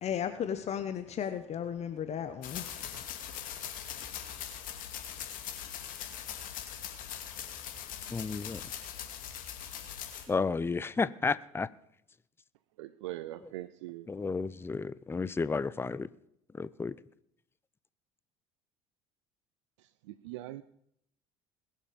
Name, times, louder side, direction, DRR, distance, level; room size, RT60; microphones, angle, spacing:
voice 1, 0.0-2.7 2.9-3.0, left 8 dB, 45° left, 1.1 m, -35 dB
sound 1, 2.4-10.2, left 9 dB, 60° left, 2.5 m, -41 dB
voice 2, 8.1-8.6 10.3-11.7 14.1-16.1 16.6-16.9, left 4 dB, 15° left, 0.6 m, -32 dB
voice 3, 12.8-14.1 20.1-20.6, right 16 dB, 85° right, 0.5 m, -41 dB
21.0 x 7.4 x 5.2 m
hypercardioid pair, 75°, 15 cm